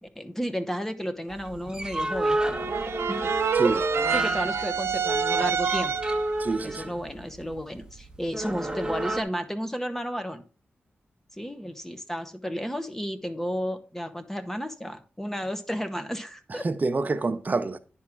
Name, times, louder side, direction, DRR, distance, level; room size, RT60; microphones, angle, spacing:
voice 1, 0.0-2.4 3.1-3.3 4.1-5.9 6.6-10.4 11.4-16.7, equal, 10° left, 0.9 m, -32 dB
sound 1, 1.3-9.2, right 2 dB, 20° right, 1.1 m, -30 dB
sound 2, 2.5-6.3, right 7 dB, 90° right, 0.6 m, -27 dB
voice 2, 3.5-3.9 6.4-6.9 16.5-17.8, right 3 dB, 40° right, 0.8 m, -27 dB
10.0 x 3.7 x 6.0 m
cardioid pair, 70°, 4 cm